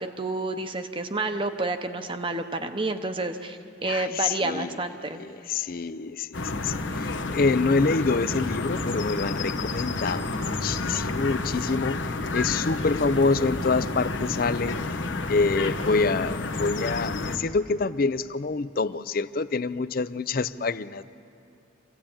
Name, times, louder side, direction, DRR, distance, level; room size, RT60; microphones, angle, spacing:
voice 1, 0.0-5.2, right 2 dB, 25° right, 7 dB, 0.8 m, -29 dB
voice 2, 3.8-4.8 5.1-15.0 15.3-21.0, left 4 dB, 50° left, 15 dB, 0.5 m, -26 dB
sound 1, 6.3-17.4, left 3 dB, 80° left, 1.2 m, -30 dB
25.0 x 16.0 x 8.8 m, 2.6 s
head